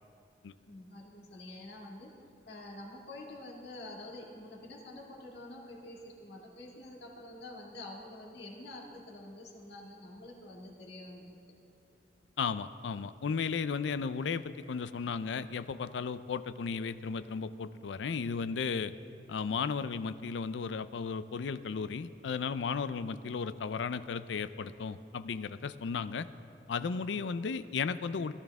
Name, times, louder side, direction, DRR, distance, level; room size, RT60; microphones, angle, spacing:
voice 1, 0.7-2.1 2.5-11.4, left 1 dB, 65° left, -2 dB, 2.1 m, -47 dB
voice 2, 12.4-18.9 19.3-26.3 26.7-28.3, left 5 dB, 90° left, 14 dB, 0.4 m, -35 dB
17.5 x 12.0 x 3.5 m, 2.6 s
head